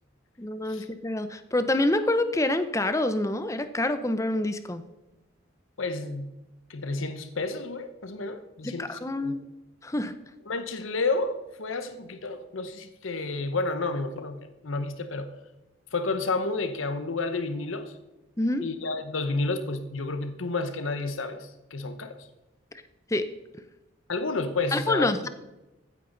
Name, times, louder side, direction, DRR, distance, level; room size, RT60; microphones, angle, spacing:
voice 1, 0.4-4.8 8.6-9.4 9.8-10.2 18.4-18.6 23.1-23.3 24.7-25.3, left 1 dB, 15° left, 0.6 m, -27 dB
voice 2, 5.8-6.3 6.7-9.4 10.5-15.3 15.9-18.0 18.6-22.3 24.1-25.1, left 3 dB, 80° left, 0.9 m, -31 dB
15.5 x 9.3 x 3.9 m
head